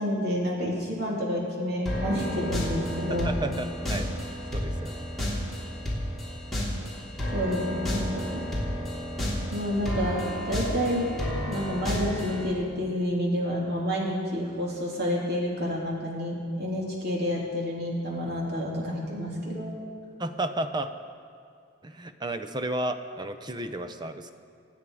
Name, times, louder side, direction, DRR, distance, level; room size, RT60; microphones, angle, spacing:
voice 1, 0.0-3.4 7.3-8.4 9.5-11.1 11.5-19.7, equal, 50° right, -3 dB, 3.2 m, -29 dB
sound 1, 1.9-12.5, equal, ahead, 3.4 m, -31 dB
voice 2, 3.1-4.1 4.5-5.0 20.2-20.9 21.8-24.3, right 1 dB, 20° right, 8 dB, 0.6 m, -32 dB
25.0 x 9.3 x 4.8 m, 2.3 s
head